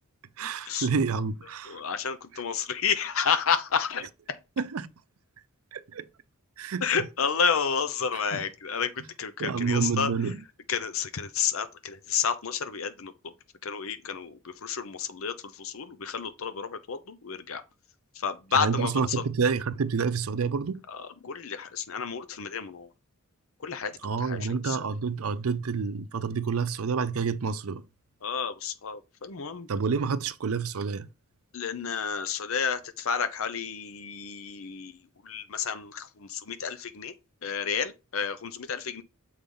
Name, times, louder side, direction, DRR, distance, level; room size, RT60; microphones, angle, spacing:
voice 1, 0.4-1.8 2.3-2.4 4.6-4.9 5.7-6.1 6.6-7.1 8.1-8.4 9.4-10.4 18.5-20.8 24.0-27.8 29.7-31.1, right 5 dB, 75° right, 0.5 m, -29 dB
voice 2, 1.7-4.1 6.8-8.9 9.2-10.1 10.7-13.3 13.6-17.6 18.2-19.2 21.2-22.9 23.6-23.9 24.2-24.4 24.7-24.8 28.2-29.7 31.5-34.9 35.3-37.1 37.4-39.0, left 6 dB, 65° left, 0.7 m, -30 dB
6.9 x 4.8 x 3.7 m
head